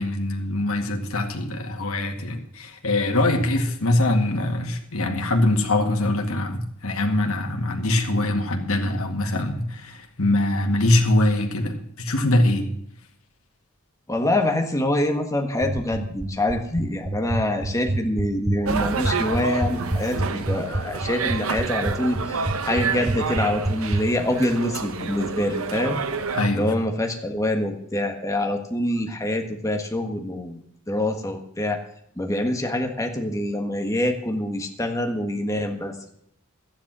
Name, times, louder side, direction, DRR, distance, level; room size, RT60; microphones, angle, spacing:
voice 1, 0.0-12.7 26.3-26.7, left 1 dB, 75° left, 3 dB, 2.0 m, -23 dB
voice 2, 14.1-26.0 26.5-30.6 30.9-31.8 32.2-36.1, left 1 dB, 15° left, 4 dB, 1.5 m, -25 dB
sound 1, 15.6-24.0, right 1 dB, 15° right, 0.7 m, -25 dB
sound 2, 18.6-26.5, right 5 dB, 70° right, 0.9 m, -29 dB
13.0 x 10.0 x 6.1 m, 0.72 s
head